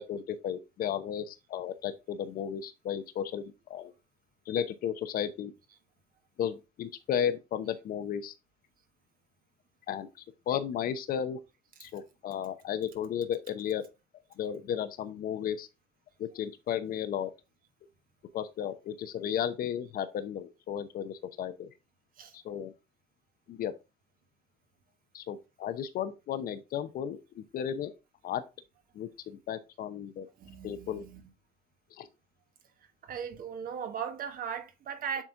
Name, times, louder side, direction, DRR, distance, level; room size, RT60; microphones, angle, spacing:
voice 1, 0.0-3.9 4.5-5.5 6.4-8.3 9.9-10.1 10.5-11.4 11.8-13.9 14.4-15.7 16.2-17.3 18.3-21.7 22.3-22.7 23.5-23.7 25.1-27.9 28.2-28.4 28.9-30.3 30.6-31.0 31.9-32.1, left 9 dB, 60° left, 0.8 m, -34 dB
voice 2, 30.4-31.2 33.0-35.2, right 7 dB, 60° right, 1.3 m, -38 dB
7.4 x 4.0 x 3.8 m
cardioid pair, 110°, 17 cm